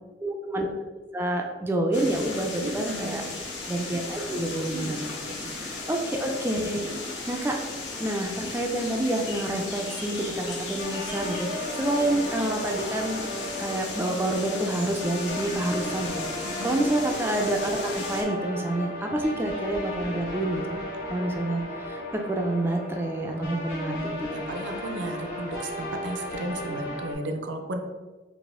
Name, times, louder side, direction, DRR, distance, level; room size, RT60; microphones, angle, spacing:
voice 1, 0.2-0.7 1.1-3.2 3.7-5.1 5.4-6.9 7.3-7.6 8.0-11.5 11.8-13.3 13.6-16.2 16.6-20.8 21.1-22.0 22.3-24.5, right 1 dB, 15° right, 1 dB, 0.3 m, -28 dB
sound 1, 1.9-18.2, left 3 dB, 75° left, 0.8 m, -36 dB
voice 2, 2.6-3.2 4.7-5.6 11.5-11.6 16.4-16.8 19.2-19.4 23.3-23.5 23.9-24.0 24.3-27.8, right 2 dB, 80° right, 4 dB, 0.5 m, -35 dB
sound 2, 10.8-27.1, left 1 dB, 50° left, 1.3 m, -35 dB
4.0 x 2.5 x 3.6 m, 1.3 s
head